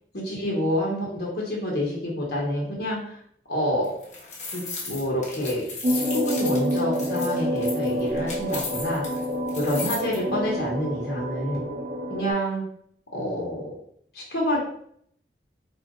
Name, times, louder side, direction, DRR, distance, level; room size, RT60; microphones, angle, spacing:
voice 1, 0.1-3.2 3.5-3.9 4.5-5.6 5.9-9.0 9.6-11.6 12.1-12.6 13.1-13.8 14.1-14.6, equal, 70° left, -4 dB, 1.4 m, -27 dB
sound 1, 3.8-10.2, left 3 dB, 40° left, 1.1 m, -35 dB
sound 2, 5.8-12.3, equal, 45° right, 0.5 m, -28 dB
4.4 x 2.6 x 3.7 m, 0.64 s
head